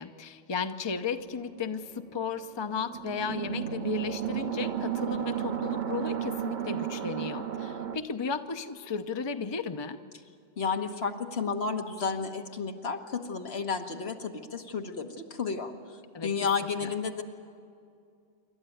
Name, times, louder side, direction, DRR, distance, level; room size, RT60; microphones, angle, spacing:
voice 1, 0.0-10.0 16.1-16.5 16.8-16.9, left 6 dB, 30° left, 9 dB, 0.7 m, -35 dB
sound 1, 1.2-8.0, right 10 dB, 50° right, 0.9 m, -34 dB
voice 2, 10.6-17.2, left 5 dB, 75° left, 5 dB, 1.6 m, -32 dB
27.0 x 12.5 x 9.2 m, 2.3 s
omnidirectional pair, 1.1 m